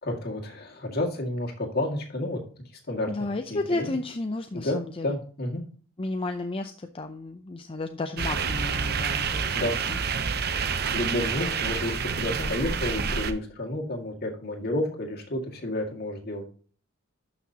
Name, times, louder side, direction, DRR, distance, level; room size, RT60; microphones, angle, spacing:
voice 1, 0.0-2.4 2.9-4.0 4.5-5.7 9.5-9.8 10.9-16.5, left 1 dB, 55° left, 1 dB, 2.1 m, -31 dB
voice 2, 3.1-5.1 6.0-10.0 11.4-11.5 12.3-12.6, left 2 dB, 30° left, 6 dB, 0.6 m, -33 dB
sound 1, 8.2-13.3, right 5 dB, 55° right, 0.8 m, -28 dB
12.0 x 6.0 x 2.9 m, 0.42 s
head